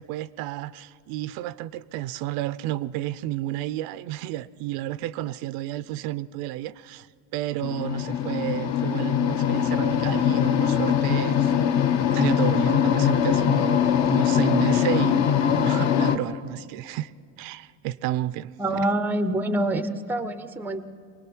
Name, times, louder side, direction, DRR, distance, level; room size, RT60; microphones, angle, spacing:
voice 1, 0.0-7.1 7.3-11.5 12.1-17.1 17.4-18.8, right 14 dB, 80° right, 0.6 m, -31 dB
sound 1, 7.6-16.2, left 9 dB, 50° left, 0.9 m, -22 dB
voice 2, 18.6-20.8, right 1 dB, 5° right, 0.5 m, -26 dB
23.5 x 19.0 x 6.1 m
cardioid pair, 165°, 35 cm